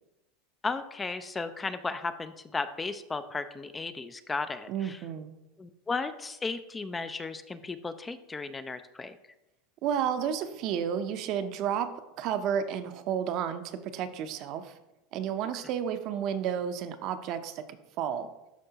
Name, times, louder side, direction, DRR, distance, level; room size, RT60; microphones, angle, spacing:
voice 1, 0.6-5.0 5.6-9.2, left 4 dB, 15° left, 11 dB, 0.3 m, -35 dB
voice 2, 4.7-5.3 9.8-11.9 12.2-14.7 15.1-18.3, right 8 dB, 50° right, 9 dB, 0.6 m, -31 dB
12.0 x 4.4 x 2.8 m, 0.94 s
supercardioid pair, 130°, 0 cm